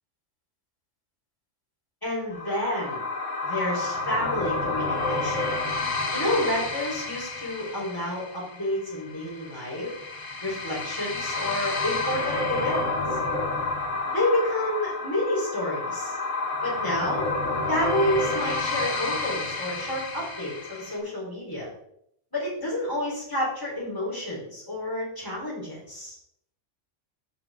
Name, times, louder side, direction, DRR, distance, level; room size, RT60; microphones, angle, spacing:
voice 1, 2.0-3.0 3.4-5.5 6.1-9.9 10.4-12.8 13.1-13.2 14.1-16.2 16.6-17.2 17.7-21.7 22.3-26.2, left 1 dB, 15° left, -7 dB, 4.2 m, -29 dB
sound 1, 2.3-21.0, left 3 dB, 90° left, 1.7 m, -30 dB
13.5 x 4.9 x 3.7 m, 0.73 s
omnidirectional pair, 1.3 m